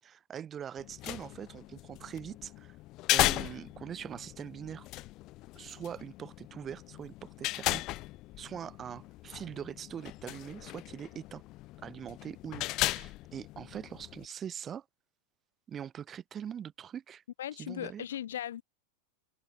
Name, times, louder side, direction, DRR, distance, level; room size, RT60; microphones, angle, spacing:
voice 1, 0.0-2.8 3.1-4.9 5.5-7.8 8.4-11.4 11.8-14.8 15.7-17.2 17.6-18.1, right 8 dB, 25° right, 7.6 m, -42 dB
sound 1, 0.8-14.3, left 19 dB, 40° left, 3.7 m, -36 dB
voice 2, 17.4-18.6, left 11 dB, 60° left, 2.4 m, -38 dB
figure-of-eight pair, 90°, 0 cm